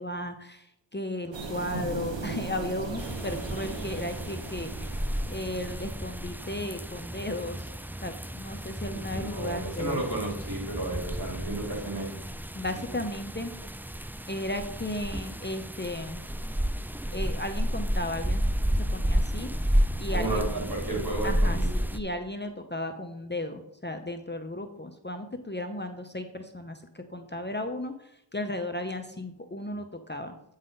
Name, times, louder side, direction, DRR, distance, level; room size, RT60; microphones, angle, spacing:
voice 1, 0.0-7.7 8.0-10.0 12.5-13.5 14.3-16.3 17.1-20.4 21.1-30.3, left 1 dB, 25° left, 6 dB, 0.7 m, -35 dB
sound 1, 1.3-6.2, right 3 dB, 85° right, 1.2 m, -38 dB
sound 2, 3.0-22.0, equal, 5° right, 0.4 m, -31 dB
voice 2, 8.9-12.2 20.1-21.7, right 2 dB, 55° right, -1 dB, 2.9 m, -33 dB
8.7 x 4.0 x 5.3 m, 0.81 s
wide cardioid pair, 40°, 43 cm